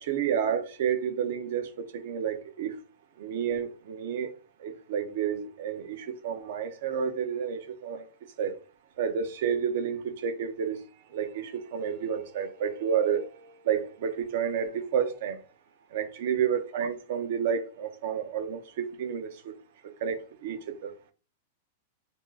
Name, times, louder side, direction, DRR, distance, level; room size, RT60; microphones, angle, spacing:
voice 1, 0.0-1.7 2.0-2.7 3.2-4.3 4.6-8.1 8.4-8.5 9.0-10.8 11.1-13.2 13.7-15.4 15.9-19.5 20.0-20.6 20.8-20.9, right 8 dB, 55° right, 0.6 m, -30 dB
3.5 x 2.4 x 3.5 m
supercardioid pair, 170°, 0 cm